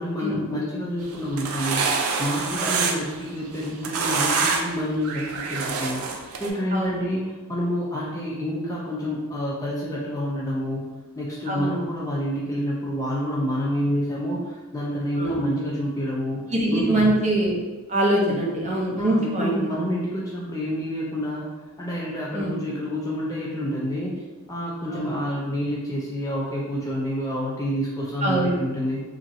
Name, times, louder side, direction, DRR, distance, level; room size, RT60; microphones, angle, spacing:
voice 1, 0.0-10.9 11.2-17.1 18.2-18.5 19.0-29.0, equal, 15° left, -5 dB, 0.3 m, -28 dB
sound 1, 1.1-3.2 3.5-4.8 5.0-6.5, right 4 dB, 80° right, 0.4 m, -26 dB
voice 2, 11.5-11.8 15.2-15.4 16.5-17.5 17.9-19.6 22.3-22.5 24.9-25.1 28.2-28.6, right 1 dB, 30° right, -3 dB, 0.6 m, -23 dB
2.9 x 2.5 x 2.7 m, 1.2 s
head